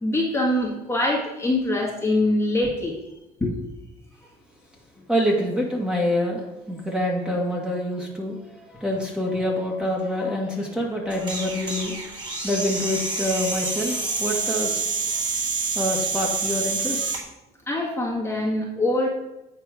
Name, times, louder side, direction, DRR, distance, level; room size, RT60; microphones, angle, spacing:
voice 1, 0.0-2.9 3.4-3.5 17.7-19.1, left 1 dB, 15° left, -3 dB, 1.6 m, -23 dB
voice 2, 5.1-11.9 12.4-14.9 15.8-17.2, left 1 dB, 5° right, -1 dB, 1.7 m, -26 dB
sound 1, 11.1-17.2, right 4 dB, 30° right, 2.5 m, -27 dB
8.8 x 4.4 x 4.9 m, 0.95 s
cardioid pair, 110°, 17 cm